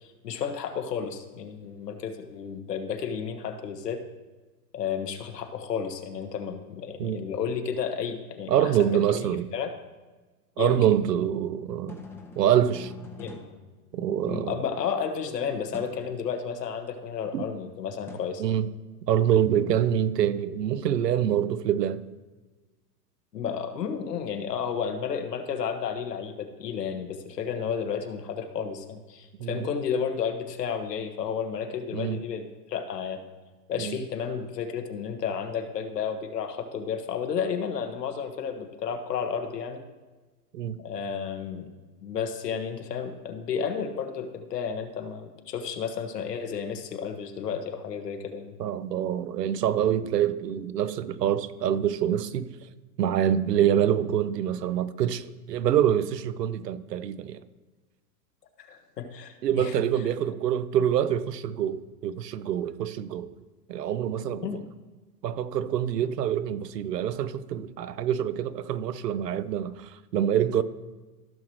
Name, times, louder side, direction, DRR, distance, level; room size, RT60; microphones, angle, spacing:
voice 1, 0.0-4.0 4.7-9.2 9.5-9.7 10.6-10.8 13.2-13.4 14.2-18.4 23.3-33.2 33.7-39.8 40.8-41.7 42.0-48.5 58.6-59.8 64.4-64.7, left 7 dB, 85° left, 1.4 m, -32 dB
voice 2, 8.5-9.5 10.6-12.0 12.4-12.9 13.9-14.6 17.3-17.4 18.4-18.7 19.1-22.0 29.4-29.6 31.9-32.2 33.8-34.0 40.5-40.8 48.6-52.5 53.0-57.4 59.4-63.3 63.7-64.5 65.2-70.6, right 10 dB, 85° right, 0.7 m, -25 dB
sound 1, 11.7-14.5 15.7-16.1 18.1-19.1, left 3 dB, 5° left, 0.4 m, -45 dB
15.0 x 6.2 x 3.0 m
hypercardioid pair, 125°, 47 cm